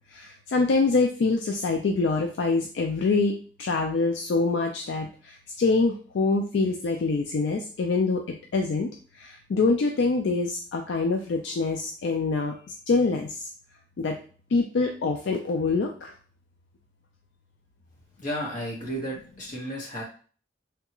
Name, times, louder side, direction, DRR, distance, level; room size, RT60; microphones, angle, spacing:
voice 1, 0.1-8.9 9.1-12.5 12.9-13.5 14.0-14.2 14.5-16.1, left 3 dB, 70° left, 2 dB, 0.4 m, -25 dB
voice 2, 18.2-20.0, equal, 45° left, -3 dB, 1.2 m, -33 dB
3.4 x 2.3 x 2.9 m, 0.41 s
head